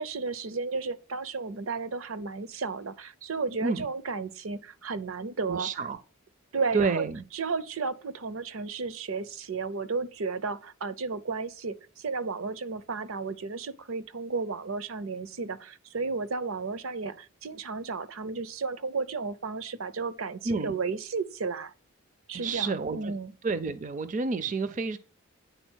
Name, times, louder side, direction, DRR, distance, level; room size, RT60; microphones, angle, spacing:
voice 1, 0.0-5.7 6.5-7.1 7.3-21.7 22.3-23.3, right 4 dB, 75° right, 0.6 m, -33 dB
voice 2, 5.5-6.0 6.7-7.2 20.4-20.7 22.3-23.1 23.4-25.0, right 4 dB, 35° right, 0.4 m, -29 dB
9.1 x 3.9 x 6.2 m
head